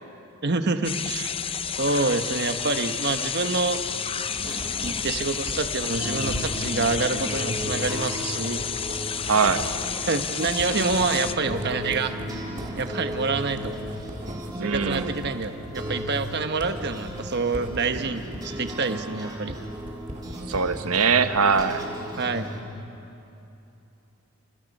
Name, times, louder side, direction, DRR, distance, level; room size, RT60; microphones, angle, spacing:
voice 1, 0.4-1.3 1.8-3.8 4.5-8.7 9.6-9.7 10.0-12.2 12.8-13.8 14.6-19.6 22.2-22.5, right 3 dB, 50° right, 7 dB, 1.2 m, -27 dB
sound 1, 0.8-11.3, left 7 dB, 25° left, 0.6 m, -30 dB
sound 2, 3.1-22.6, equal, 20° right, 3.5 m, -36 dB
Writing, 4.4-20.9 21.2-21.9, right 1 dB, 35° right, 2.6 m, -40 dB
voice 2, 9.2-9.6 14.6-15.2 20.5-21.9, right 5 dB, 75° right, 9 dB, 1.0 m, -22 dB
29.0 x 28.5 x 5.4 m, 2.8 s
head